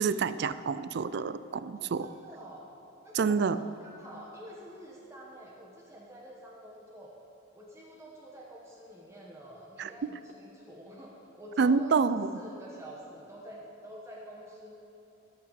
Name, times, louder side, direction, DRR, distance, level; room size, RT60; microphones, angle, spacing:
voice 1, 0.0-2.1 3.1-3.6 9.8-9.9 11.6-12.3, right 5 dB, 55° right, 15 dB, 0.3 m, -27 dB
voice 2, 1.7-2.6 3.0-7.1 7.5-14.7, equal, 15° right, -3 dB, 1.2 m, -48 dB
14.5 x 5.7 x 8.2 m, 2.9 s
head